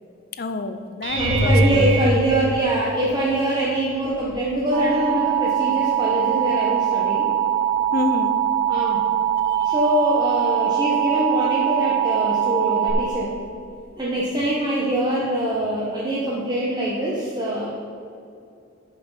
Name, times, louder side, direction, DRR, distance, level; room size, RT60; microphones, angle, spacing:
voice 1, 0.4-1.9 7.9-8.4, left 3 dB, 50° left, 8 dB, 0.6 m, -27 dB
sound 1, 1.0-3.3 4.0-4.4 4.8-4.9 9.3-9.4, right 1 dB, 60° right, 1.7 m, -23 dB
voice 2, 1.2-7.3 7.5-7.6 8.6-9.0 9.6-13.3 14.0-17.7, right 1 dB, 20° right, -6 dB, 1.1 m, -23 dB
Alarm, 4.7-12.9, right 10 dB, 40° right, 1.9 m, -22 dB
11.0 x 5.8 x 5.6 m, 2.7 s
head